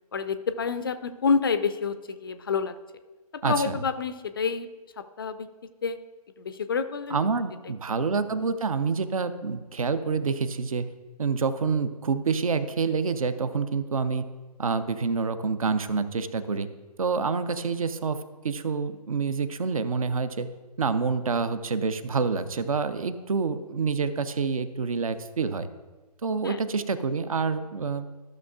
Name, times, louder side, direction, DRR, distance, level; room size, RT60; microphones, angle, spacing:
voice 1, 0.1-2.7 3.3-4.7 5.2-5.5 5.8-6.0 6.4-7.2 26.4-26.6, left 5 dB, 35° left, 12 dB, 0.4 m, -28 dB
voice 2, 3.4-3.8 7.1-10.9 11.2-14.3 14.6-16.7 17.0-20.5 20.8-25.7 26.2-28.1, right 5 dB, 60° right, 13 dB, 0.6 m, -27 dB
14.0 x 6.4 x 2.4 m, 1.2 s
figure-of-eight pair, 135°, 21 cm